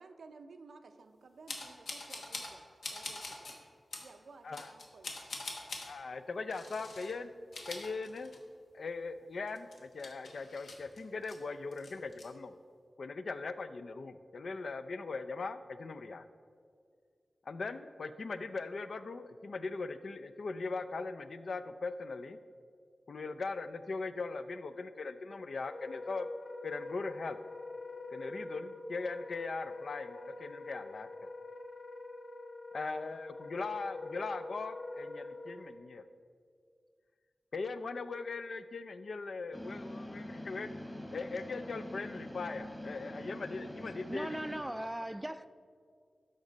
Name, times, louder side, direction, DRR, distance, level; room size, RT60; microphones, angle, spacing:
voice 1, 0.0-3.6 4.0-5.1, right 4 dB, 90° right, 0.5 m, -55 dB
sound 1, 1.5-2.6 2.8-3.6 3.9-4.1 4.5-5.9 6.5-7.1 7.4-8.6 8.9-9.0 9.5-11.4 11.7-12.2, left 2 dB, 90° left, 1.1 m, -44 dB
voice 2, 5.9-7.3 7.7-8.3 8.7-12.6 13.0-16.3 17.5-22.4 23.1-26.3 26.6-27.4 28.1-31.1 32.7-36.1 37.5-40.7 41.1-44.4, left 3 dB, 75° left, 0.4 m, -40 dB
Wind instrument woodwind instrument, 25.6-35.7, left 2 dB, 40° left, 0.7 m, -45 dB
sound 2, 39.5-44.6, left 1 dB, 20° left, 1.3 m, -44 dB
voice 3, 43.9-45.5, right 1 dB, 10° right, 0.3 m, -39 dB
12.5 x 5.2 x 3.9 m
wide cardioid pair, 70°, 0 cm